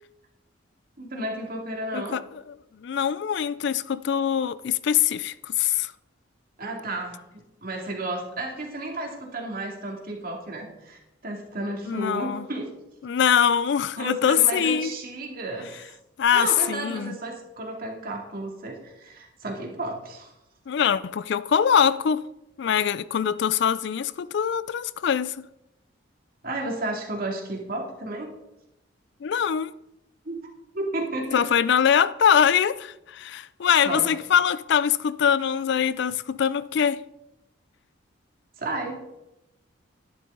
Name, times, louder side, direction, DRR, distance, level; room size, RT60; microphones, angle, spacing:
voice 1, 1.0-2.2 6.6-7.2 7.6-12.7 14.0-15.7 16.3-20.3 26.4-28.3 30.3-30.5 30.7-31.5 33.8-34.1 38.6-39.0, right 2 dB, 50° right, 2.4 m, -32 dB
voice 2, 2.8-5.9 11.9-12.4 13.0-15.0 16.2-17.2 20.7-22.2 22.6-25.5 29.2-29.7 31.3-37.0, left 8 dB, 60° left, 0.4 m, -23 dB
12.0 x 11.0 x 3.8 m
head